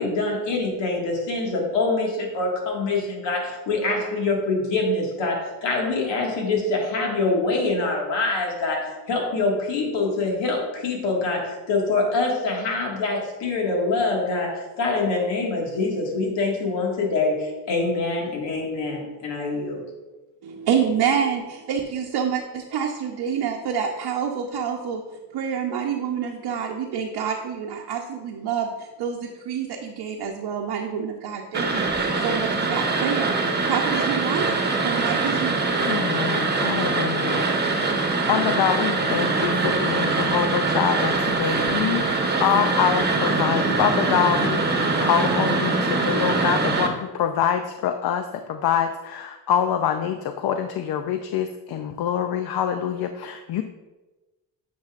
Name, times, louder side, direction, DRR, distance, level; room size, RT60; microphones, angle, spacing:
voice 1, 0.0-19.8, left 3 dB, 85° left, -1 dB, 2.0 m, -25 dB
voice 2, 20.4-25.0 25.3-35.8, right 7 dB, 70° right, 0 dB, 0.8 m, -27 dB
sound 1, 31.5-46.9, right 3 dB, 25° right, 1.0 m, -23 dB
voice 3, 35.9-37.4 38.3-53.6, left 9 dB, 60° left, 7 dB, 0.5 m, -25 dB
9.4 x 5.6 x 2.5 m, 1.1 s
cardioid pair, 105°, 42 cm